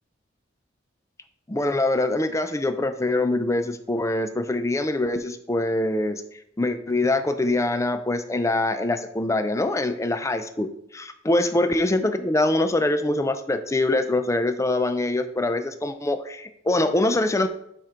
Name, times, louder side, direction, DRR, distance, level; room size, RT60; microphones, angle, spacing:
voice 1, 1.5-6.2 6.6-10.7 10.9-17.5, left 2 dB, 15° left, 9 dB, 0.5 m, -24 dB
6.2 x 5.1 x 4.4 m, 0.74 s
head